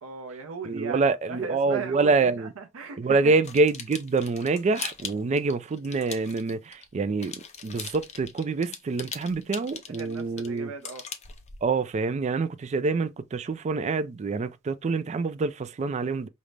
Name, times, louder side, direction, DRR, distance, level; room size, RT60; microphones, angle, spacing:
voice 1, 0.0-3.3 10.0-11.0, right 5 dB, 85° right, 0.6 m, -37 dB
voice 2, 0.7-2.5 3.0-10.7 11.6-16.3, right 4 dB, 35° right, 0.3 m, -26 dB
sound 1, 3.4-6.9 7.2-11.7, left 6 dB, 35° left, 0.5 m, -40 dB
5.1 x 2.0 x 3.2 m
head